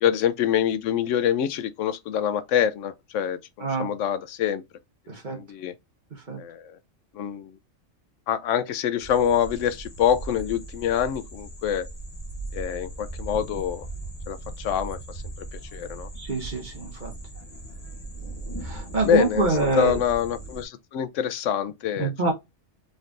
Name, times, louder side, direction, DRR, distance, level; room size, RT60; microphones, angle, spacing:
voice 1, 0.0-4.6 5.3-5.7 6.4-6.8 7.1-7.6 8.3-11.9 12.5-13.9 14.3-16.1 19.0-19.5 19.7-22.1, left 9 dB, 85° left, 0.9 m, -26 dB
voice 2, 5.1-5.4 6.1-6.4 16.2-17.1 18.6-20.0 22.0-22.3, right 3 dB, 40° right, 1.2 m, -26 dB
sound 1, 9.0-20.6, right 2 dB, 35° left, 1.1 m, -38 dB
4.0 x 3.4 x 2.5 m
omnidirectional pair, 1.3 m